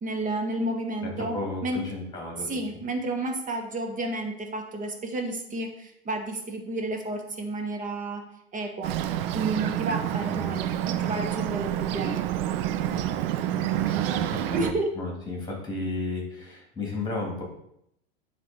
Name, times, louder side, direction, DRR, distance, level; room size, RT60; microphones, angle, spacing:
voice 1, 0.0-1.3 1.6-1.8 2.5-8.2 8.5-8.9 9.3-12.2 14.5-14.9, right 2 dB, 25° right, 4 dB, 1.3 m, -31 dB
voice 2, 1.0-2.6 10.3-10.5 12.9-13.2 13.5-17.4, left 2 dB, 10° left, 0 dB, 3.0 m, -34 dB
Bird, 8.8-14.7, right 12 dB, 60° right, 0.6 m, -28 dB
9.4 x 3.5 x 4.6 m, 0.75 s
hypercardioid pair, 110°, 32 cm